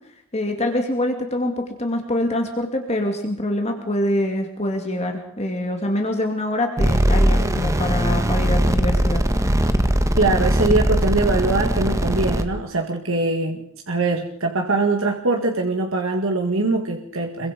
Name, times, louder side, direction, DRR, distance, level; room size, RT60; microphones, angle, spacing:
voice 1, 0.3-9.2, left 1 dB, 30° left, 3 dB, 2.5 m, -25 dB
sound 1, 6.8-12.4, equal, 15° right, 1.5 m, -20 dB
voice 2, 10.2-17.5, right 3 dB, 75° right, 2 dB, 2.0 m, -22 dB
26.0 x 23.0 x 5.2 m, 0.68 s
head